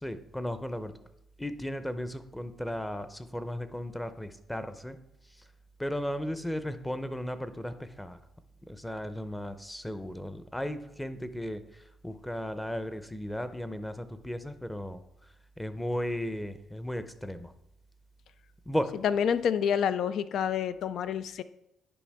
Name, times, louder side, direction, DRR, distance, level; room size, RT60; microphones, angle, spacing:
voice 1, 0.0-0.9 1.4-5.0 5.8-8.2 8.7-15.0 15.6-17.5 18.7-18.9, equal, 5° left, 11 dB, 0.6 m, -35 dB
voice 2, 19.0-21.4, left 8 dB, 70° left, 14 dB, 0.3 m, -28 dB
10.0 x 5.1 x 3.5 m, 0.85 s
cardioid pair, 90°, 0 cm